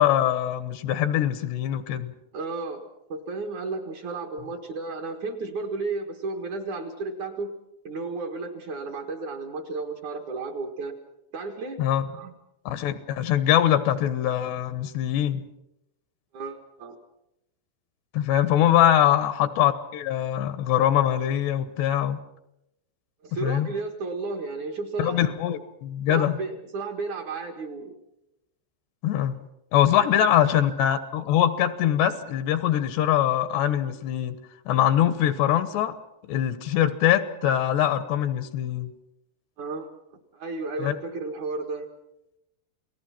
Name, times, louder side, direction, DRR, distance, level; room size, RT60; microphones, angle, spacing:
voice 1, 0.0-2.1 11.8-12.1 12.7-15.4 18.1-22.2 23.4-23.7 25.0-26.3 29.0-29.4 29.7-34.4 34.7-36.0 36.3-38.9 40.8-40.9, left 11 dB, 80° left, 12 dB, 3.2 m, -23 dB
voice 2, 2.3-2.8 3.1-7.5 7.8-10.9 11.3-12.3 16.3-17.0 19.1-19.2 23.2-25.3 26.1-27.9 30.1-30.2 30.5-30.6 39.6-39.9 40.3-41.9, right 3 dB, 55° right, 3 dB, 2.6 m, -33 dB
29.0 x 19.0 x 5.9 m, 0.87 s
omnidirectional pair, 4.9 m